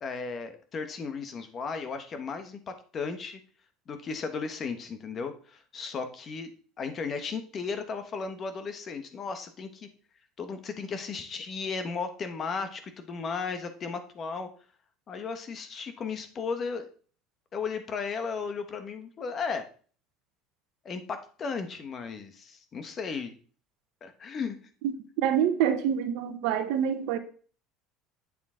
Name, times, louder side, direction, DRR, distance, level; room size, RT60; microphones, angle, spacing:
voice 1, 0.0-3.4 3.9-6.5 6.8-9.9 10.4-14.5 15.1-16.9 17.5-19.7 20.8-23.3 24.0-24.6, left 5 dB, 35° left, 1.3 m, -35 dB
voice 2, 25.2-27.2, right 9 dB, 75° right, 1.3 m, -26 dB
8.7 x 6.8 x 3.9 m
supercardioid pair, 125°, 0 cm